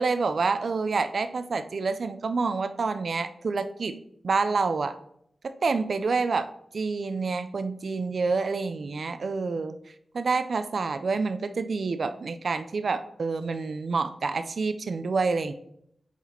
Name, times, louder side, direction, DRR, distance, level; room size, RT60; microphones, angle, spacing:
voice 1, 0.0-4.0 4.2-4.9 5.6-6.5 6.7-9.8 10.1-15.5, right 4 dB, 60° right, 10 dB, 0.4 m, -27 dB
7.1 x 4.0 x 4.3 m, 0.71 s
wide cardioid pair, 115°, 0 cm